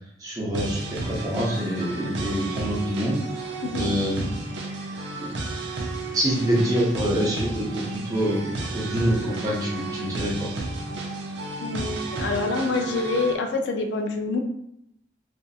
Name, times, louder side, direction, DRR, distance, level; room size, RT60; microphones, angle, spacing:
voice 1, 0.2-3.4 3.7-4.3 5.2-5.4 6.1-10.5, equal, 20° right, -5 dB, 0.6 m, -26 dB
sound 1, 0.5-13.3, right 2 dB, 85° right, 0.5 m, -32 dB
voice 2, 11.6-14.4, left 3 dB, 85° left, 4 dB, 0.4 m, -26 dB
2.6 x 2.4 x 2.3 m, 0.77 s
head